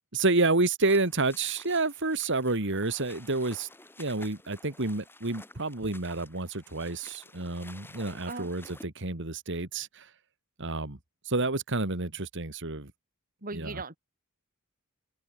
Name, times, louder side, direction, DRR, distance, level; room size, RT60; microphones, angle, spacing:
voice 1, 0.1-3.7 4.0-10.1 10.6-11.0 11.2-12.9 13.5-13.8, right 3 dB, 60° right, 2.5 m, -29 dB
sound 1, 0.8-8.9, left 2 dB, 10° left, 6.6 m, -52 dB
voice 2, 13.4-14.0, right 3 dB, 40° right, 3.6 m, -38 dB
open air
head